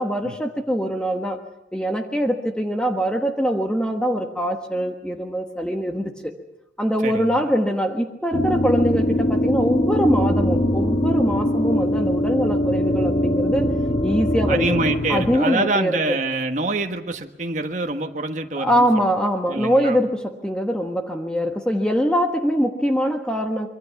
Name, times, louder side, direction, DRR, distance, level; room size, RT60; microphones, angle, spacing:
voice 1, 0.0-1.4 1.7-6.3 6.8-13.7 14.0-14.8 15.1-16.2 18.6-23.7, equal, 5° left, 3 dB, 1.3 m, -23 dB
voice 2, 7.0-7.4 14.5-19.0 19.5-20.0, right 2 dB, 45° right, 4 dB, 1.5 m, -25 dB
sound 1, 8.3-15.4, left 1 dB, 35° left, 1.7 m, -22 dB
25.5 x 23.5 x 5.9 m, 0.90 s
head